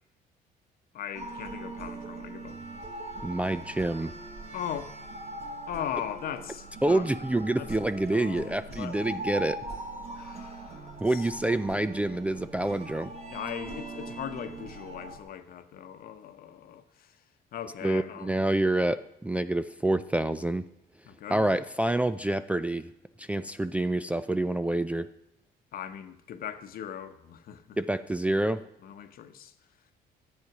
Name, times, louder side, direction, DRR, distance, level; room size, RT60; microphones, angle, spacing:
voice 1, 0.9-2.6 4.5-5.0 5.7-7.1 7.6-7.7 8.1-9.0 10.1-11.3 13.3-17.2 17.5-18.4 21.0-21.5 25.7-27.8 28.8-29.5, left 9 dB, 60° left, 0.9 m, -39 dB
sound 1, 1.1-15.2, right 2 dB, 40° right, 1.5 m, -41 dB
voice 2, 3.2-4.1 6.8-9.6 11.0-13.1 17.8-20.6 21.3-22.9 23.2-25.1 27.8-28.6, right 1 dB, 10° right, 0.3 m, -27 dB
11.0 x 8.2 x 5.9 m
cardioid pair, 110°, 17 cm